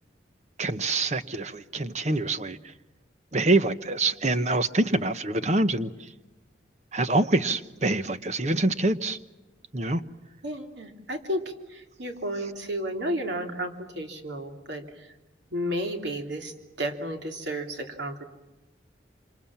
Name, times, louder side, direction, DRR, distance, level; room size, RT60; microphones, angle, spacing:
voice 1, 0.6-2.7 3.3-6.1 6.9-9.2 9.7-10.0, right 2 dB, 35° right, 12 dB, 1.0 m, -25 dB
voice 2, 10.4-11.4 11.7-14.8 15.5-16.5 16.8-18.2, equal, 70° right, 4 dB, 3.1 m, -32 dB
27.0 x 26.5 x 7.3 m, 1.1 s
head